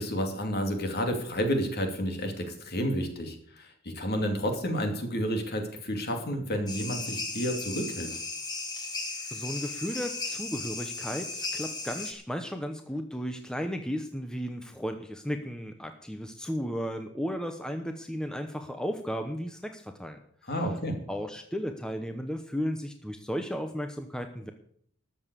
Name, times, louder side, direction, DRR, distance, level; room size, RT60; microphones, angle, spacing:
voice 1, 0.0-8.1 20.5-21.0, equal, 50° left, 4 dB, 2.7 m, -30 dB
sound 1, 6.7-12.1, left 3 dB, 20° left, 1.9 m, -36 dB
voice 2, 9.3-20.2 20.6-20.7 21.1-24.5, equal, 5° left, 6 dB, 0.8 m, -34 dB
13.5 x 7.2 x 8.2 m, 0.63 s
head